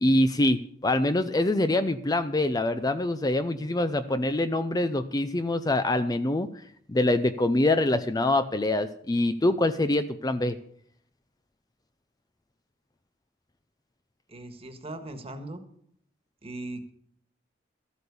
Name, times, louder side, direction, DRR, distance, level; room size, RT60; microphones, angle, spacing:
voice 1, 0.0-6.5 6.9-10.6, left 1 dB, 20° left, 11 dB, 0.5 m, -25 dB
voice 2, 14.3-15.6 16.4-16.9, right 2 dB, 30° right, 7 dB, 1.5 m, -39 dB
13.5 x 8.3 x 6.9 m, 0.65 s
head